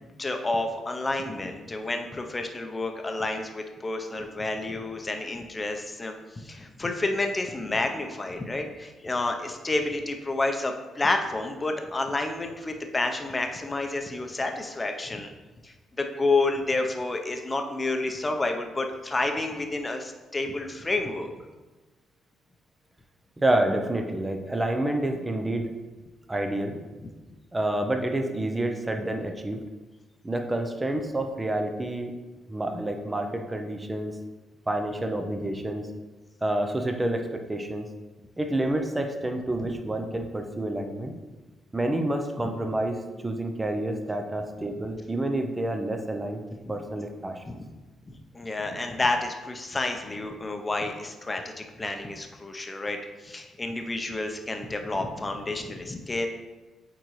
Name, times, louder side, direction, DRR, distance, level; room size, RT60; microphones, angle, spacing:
voice 1, 0.2-15.3 15.6-21.3 46.6-46.7 47.5-47.7 48.1-56.3, left 2 dB, 25° left, 4 dB, 0.7 m, -30 dB
voice 2, 23.4-25.7 26.3-26.8 27.5-29.6 30.2-32.1 32.5-34.2 34.7-35.9 36.4-37.9 38.4-41.2 41.7-46.4 46.7-47.6, right 1 dB, 15° right, 5 dB, 0.6 m, -28 dB
8.6 x 3.9 x 3.2 m, 1.2 s
cardioid pair, 90°, 0 cm